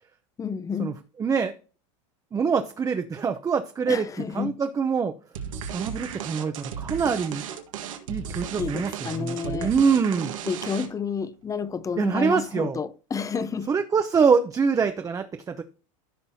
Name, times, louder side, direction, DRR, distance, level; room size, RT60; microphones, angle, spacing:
voice 1, 0.4-1.0 3.9-4.6 8.6-9.7 10.5-13.7, left 6 dB, 20° left, 0.6 m, -30 dB
voice 2, 1.2-1.5 2.3-4.1 4.3-5.1 5.7-7.4 8.1-10.3 12.0-12.8 13.7-15.6, right 6 dB, 20° right, 0.7 m, -24 dB
sound 1, 5.4-11.1, right 7 dB, 90° right, 1.6 m, -35 dB
14.5 x 5.4 x 2.8 m
supercardioid pair, 110°, 16 cm